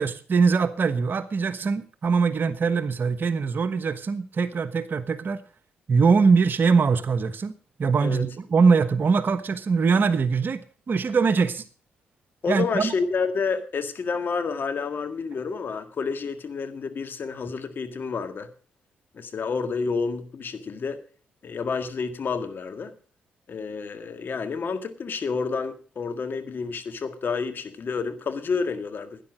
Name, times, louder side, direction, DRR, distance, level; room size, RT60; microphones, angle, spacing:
voice 1, 0.0-5.4 5.9-7.5 7.8-11.6 12.5-12.9, right 5 dB, 55° right, 1.2 m, -22 dB
voice 2, 12.4-18.5 19.1-21.0 21.4-22.9 23.5-29.2, left 5 dB, 55° left, 1.8 m, -29 dB
12.0 x 10.0 x 6.1 m
hypercardioid pair, 45°, 4 cm